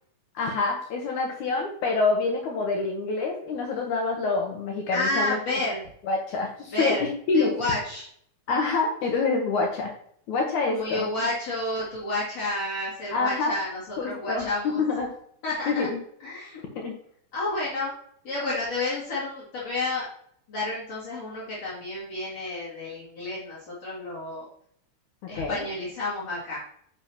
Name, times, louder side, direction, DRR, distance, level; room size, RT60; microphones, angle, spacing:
voice 1, 0.4-5.4 6.1-7.5 8.5-9.9 10.3-11.1 13.1-13.5 14.0-14.5 14.8-15.1 15.7-16.0 16.8-16.9 25.4-25.7, left 3 dB, 75° left, 1 dB, 2.5 m, -26 dB
voice 2, 4.9-5.9 6.7-7.1 7.3-8.0 10.7-14.8 15.4-15.9 16.2-16.6 17.3-17.9 18.2-20.1 20.5-24.4 25.3-26.6, left 2 dB, 55° left, -8 dB, 3.3 m, -30 dB
9.6 x 5.7 x 2.8 m, 0.66 s
omnidirectional pair, 3.6 m